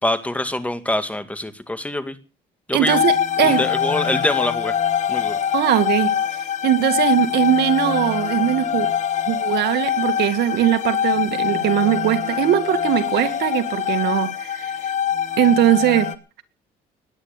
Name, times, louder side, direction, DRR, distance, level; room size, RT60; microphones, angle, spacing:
voice 1, 0.0-2.2 2.7-3.0 3.4-4.8 5.1-5.4, left 1 dB, 10° left, 10 dB, 2.1 m, -24 dB
voice 2, 2.7-3.6 5.5-8.9 9.3-14.7 15.4-16.1, right 12 dB, 75° right, 9 dB, 2.2 m, -20 dB
sound 1, 2.9-16.2, left 9 dB, 45° left, 1.5 m, -23 dB
20.0 x 9.8 x 6.8 m, 0.36 s
cardioid pair, 110°, 17 cm